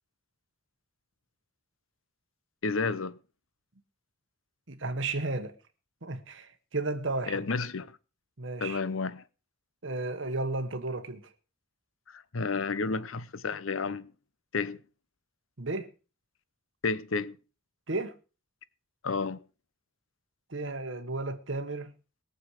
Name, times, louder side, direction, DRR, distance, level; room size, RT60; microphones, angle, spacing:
voice 1, 2.6-3.2 7.3-8.0 8.6-9.2 12.1-14.1 14.5-14.8 16.8-17.4 19.0-19.4, left 4 dB, 75° left, 0.8 m, -31 dB
voice 2, 4.7-5.5 6.0-7.4 8.4-8.8 9.8-11.3 15.6-15.9 17.9-18.1 20.5-21.9, right 2 dB, 65° right, 1.3 m, -33 dB
21.0 x 7.1 x 4.8 m
head